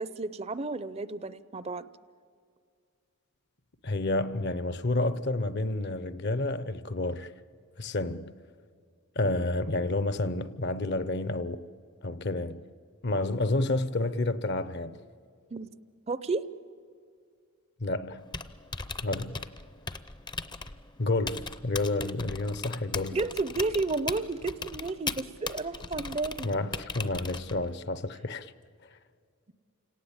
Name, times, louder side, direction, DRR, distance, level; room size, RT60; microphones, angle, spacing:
voice 1, 0.0-1.8 15.5-15.7 16.1-16.4 23.1-26.5, right 3 dB, 30° right, 0.5 m, -32 dB
voice 2, 3.8-7.3 7.8-8.3 9.2-11.6 12.0-12.6 13.0-15.0 17.8-18.2 19.0-19.4 21.0-23.2 26.4-28.5, left 2 dB, 50° left, 0.8 m, -30 dB
Typing, 18.2-27.8, left 4 dB, 20° left, 0.6 m, -39 dB
29.5 x 18.0 x 8.9 m
head